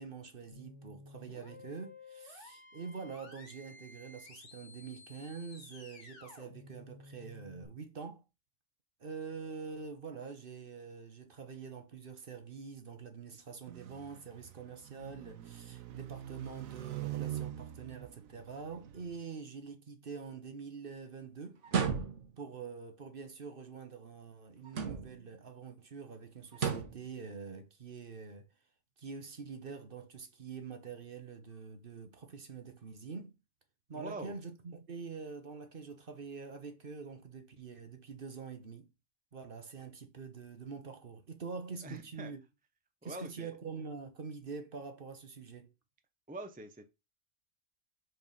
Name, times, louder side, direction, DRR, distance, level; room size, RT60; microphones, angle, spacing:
voice 1, 0.0-8.2 9.0-21.6 22.4-28.5 29.0-33.3 33.9-38.9 39.3-42.4 43.0-45.7, right 5 dB, 45° right, 1.1 m, -45 dB
sound 1, 0.5-7.6, left 3 dB, 60° left, 1.8 m, -54 dB
sound 2, 13.7-19.2, right 12 dB, 85° right, 1.2 m, -44 dB
sound 3, 21.6-22.5 24.7-25.3 26.5-27.1, right 6 dB, 65° right, 1.4 m, -34 dB
voice 2, 33.9-34.4 41.8-42.3 43.0-43.5 46.3-46.8, right 1 dB, 10° right, 0.6 m, -44 dB
5.2 x 4.6 x 5.4 m
omnidirectional pair, 1.4 m